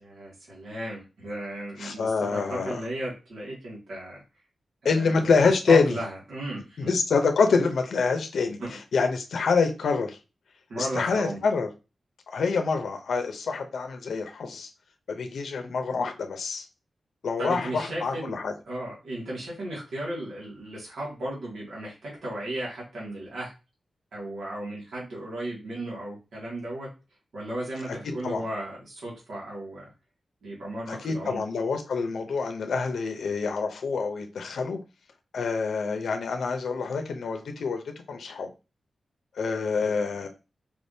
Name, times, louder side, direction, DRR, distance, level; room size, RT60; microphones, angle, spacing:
voice 1, 0.0-4.2 4.8-5.2 5.7-7.0 8.6-8.7 10.7-11.4 17.4-18.4 18.7-23.5 24.1-26.9 27.3-29.9 30.4-31.4 39.8-39.9, right 1 dB, 75° right, -5 dB, 2.1 m, -35 dB
voice 2, 1.8-2.8 4.8-6.0 6.8-8.6 8.9-10.2 10.8-11.7 12.3-14.7 15.1-16.7 17.2-18.5 28.2-28.4 30.9-34.8 35.3-38.5 39.4-40.3, left 4 dB, 80° left, 6 dB, 0.6 m, -26 dB
4.8 x 3.4 x 2.7 m, 0.29 s
wide cardioid pair, 160°, 0 cm